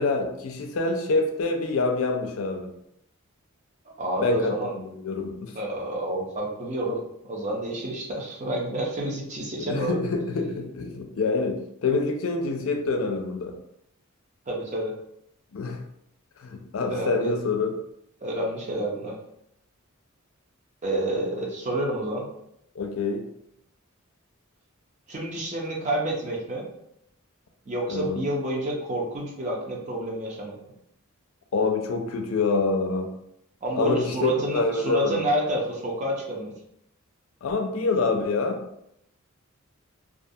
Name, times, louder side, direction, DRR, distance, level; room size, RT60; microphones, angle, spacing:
voice 1, 0.0-2.7 4.2-5.5 9.7-13.6 15.5-15.8 16.4-17.7 22.8-23.2 27.9-28.2 31.5-33.1 33.7-35.2 37.4-38.6, left 3 dB, 75° left, 4 dB, 0.4 m, -26 dB
voice 2, 3.9-4.7 5.5-7.0 7.3-10.0 14.5-14.9 16.9-17.3 18.2-19.2 20.8-22.2 25.1-26.7 27.7-30.6 33.6-36.5, right 1 dB, 35° right, -2 dB, 0.6 m, -29 dB
2.5 x 2.2 x 2.7 m, 0.75 s
head